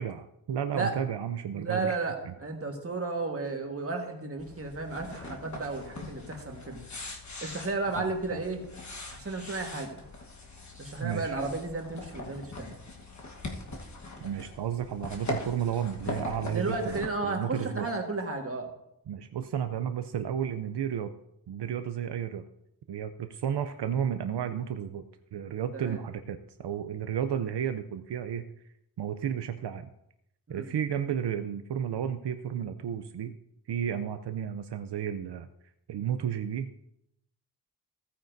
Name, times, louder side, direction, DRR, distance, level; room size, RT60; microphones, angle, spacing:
voice 1, 0.0-2.0 2.2-2.3 7.9-8.4 11.0-11.4 14.2-17.9 19.1-21.1 21.5-22.4 22.9-25.0 25.3-28.4 29.0-29.9 30.5-33.4 33.7-35.5 35.9-36.8, right 9 dB, 85° right, 9 dB, 0.6 m, -32 dB
voice 2, 1.5-6.8 7.4-8.6 9.1-10.1 10.8-12.7 16.5-18.7 25.7-26.0 30.5-30.7, right 3 dB, 35° right, 3 dB, 1.5 m, -33 dB
sound 1, 4.4-17.1, left 2 dB, 45° left, 1.3 m, -41 dB
15.0 x 9.1 x 2.6 m, 0.79 s
wide cardioid pair, 135°, 40 cm